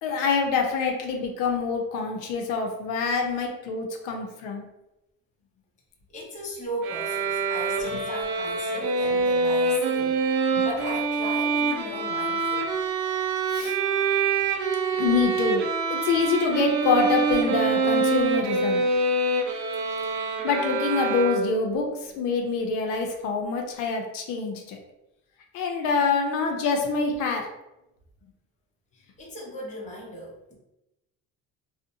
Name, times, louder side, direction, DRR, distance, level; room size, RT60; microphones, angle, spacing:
voice 1, 0.0-4.6 10.5-10.6 13.5-13.8 14.9-18.8 20.4-24.8 25.5-27.5, left 4 dB, 85° left, 2 dB, 0.6 m, -26 dB
voice 2, 6.1-12.7 28.9-30.6, equal, 25° left, -3 dB, 0.7 m, -37 dB
sound 1, 6.8-21.8, right 4 dB, 65° right, 0.5 m, -25 dB
2.6 x 2.1 x 2.6 m, 0.91 s
cardioid pair, 155°, 31 cm